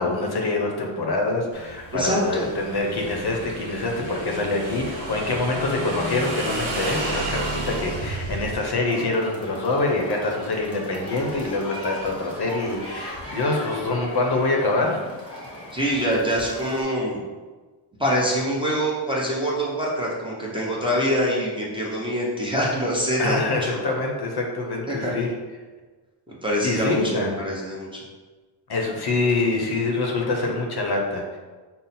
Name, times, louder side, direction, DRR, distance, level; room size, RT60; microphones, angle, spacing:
voice 1, 0.0-15.0 23.2-25.3 26.6-27.3 28.7-31.4, left 2 dB, 50° left, 1 dB, 0.7 m, -25 dB
Motorcycle / Engine, 1.5-8.5, right 1 dB, 60° right, 1.1 m, -31 dB
voice 2, 1.9-2.5 15.7-17.2 18.0-23.8 24.9-25.1 26.3-28.0, equal, 10° right, -5 dB, 0.6 m, -25 dB
sound 1, 8.8-16.8, equal, 10° left, 1.0 m, -38 dB
5.4 x 2.0 x 4.1 m, 1.3 s
wide cardioid pair, 170°, 50 cm